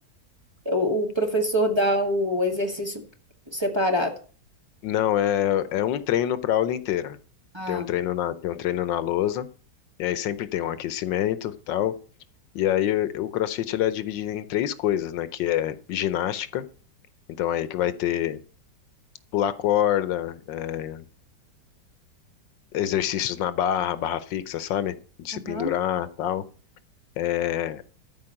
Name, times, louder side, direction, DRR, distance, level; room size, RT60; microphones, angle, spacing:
voice 1, 0.7-3.0 3.5-4.1 7.5-7.9 25.3-25.7, equal, 15° right, 3 dB, 1.6 m, -25 dB
voice 2, 4.8-7.2 7.7-9.5 10.0-11.9 12.5-16.6 17.4-18.4 19.3-21.0 22.7-26.4 27.2-27.8, left 11 dB, 85° left, 14 dB, 1.5 m, -26 dB
13.5 x 4.7 x 8.9 m, 0.40 s
omnidirectional pair, 1.9 m